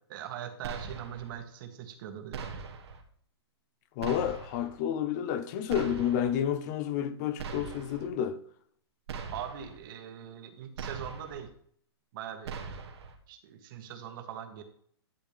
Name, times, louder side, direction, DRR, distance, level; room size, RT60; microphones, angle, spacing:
voice 1, 0.1-2.5 9.3-11.5 12.1-12.6 13.3-14.6, right 9 dB, 50° right, 1.5 m, -41 dB
sound 1, 0.6-1.3 2.3-3.0 4.0-4.7 5.7-6.4 7.4-8.1 9.1-9.8 10.8-11.5 12.4-13.1, right 5 dB, 75° right, 1.5 m, -41 dB
voice 2, 4.0-8.4, left 9 dB, 40° left, 0.8 m, -30 dB
11.5 x 7.2 x 3.4 m
hypercardioid pair, 140°, 14 cm